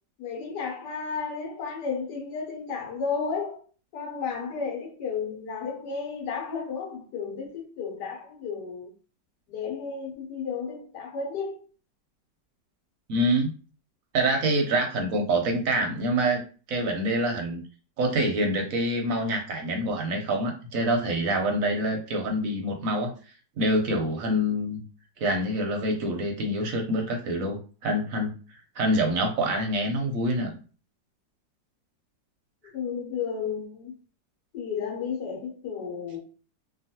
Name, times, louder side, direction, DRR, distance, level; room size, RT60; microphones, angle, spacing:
voice 1, 0.2-3.6 3.9-8.9 9.5-11.6 32.7-33.9 34.5-36.2, left 5 dB, 70° left, 1.3 m, -33 dB
voice 2, 13.1-13.5 14.1-16.4 16.7-17.6 18.0-23.1 23.6-24.8 25.2-28.3 28.7-30.5, right 1 dB, 65° right, 0.9 m, -26 dB
2.9 x 2.3 x 2.8 m
omnidirectional pair, 2.0 m